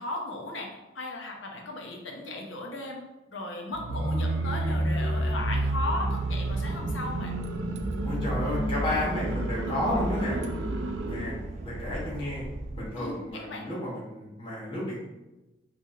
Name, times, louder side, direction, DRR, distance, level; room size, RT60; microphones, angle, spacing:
voice 1, 0.0-3.0 3.3-7.4 13.0-13.6, left 2 dB, 85° left, 0 dB, 0.9 m, -36 dB
sound 1, 3.7-11.4, right 1 dB, 90° right, 0.6 m, -29 dB
Boat Water vehicle / Engine, 4.6-13.5, right 2 dB, 35° right, 0.3 m, -40 dB
voice 2, 8.0-10.4 11.0-11.3 11.6-12.4 12.7-15.0, left 1 dB, 30° left, -7 dB, 1.5 m, -32 dB
5.3 x 3.4 x 2.8 m, 1.0 s
head